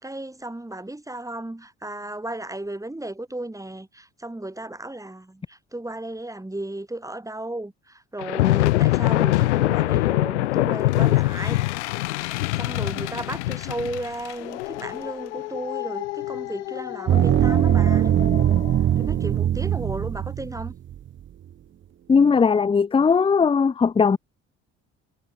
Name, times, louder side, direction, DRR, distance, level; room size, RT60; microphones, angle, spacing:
voice 1, 0.0-11.7 12.6-18.1 18.8-20.7, right 1 dB, 10° right, 4.0 m, -34 dB
sound 1, 8.2-18.8, left 19 dB, 90° left, 0.7 m, -24 dB
sound 2, 17.1-20.9, right 11 dB, 35° right, 0.5 m, -21 dB
voice 2, 22.1-24.2, left 5 dB, 15° left, 0.5 m, -18 dB
hypercardioid pair, 55°, 34 cm